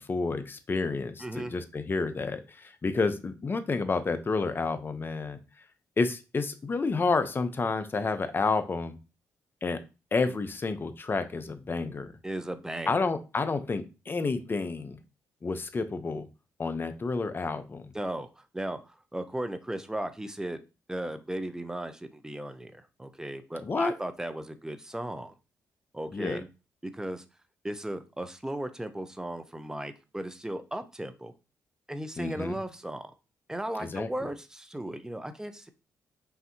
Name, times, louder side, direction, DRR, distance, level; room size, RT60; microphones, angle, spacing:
voice 1, 0.0-5.4 6.0-9.0 9.6-9.8 10.1-12.1 12.9-15.0 15.4-16.3 16.6-17.9 23.6-23.9 26.1-26.4 32.2-32.6 33.8-34.1, left 4 dB, 35° left, 10 dB, 0.6 m, -30 dB
voice 2, 1.2-1.5 12.2-13.0 17.9-20.6 20.9-25.3 25.9-26.5 26.8-27.2 27.6-31.3 31.9-33.1 33.5-35.7, right 1 dB, 10° right, 9 dB, 0.6 m, -36 dB
5.7 x 2.7 x 2.7 m, 0.30 s
cardioid pair, 70°, 6 cm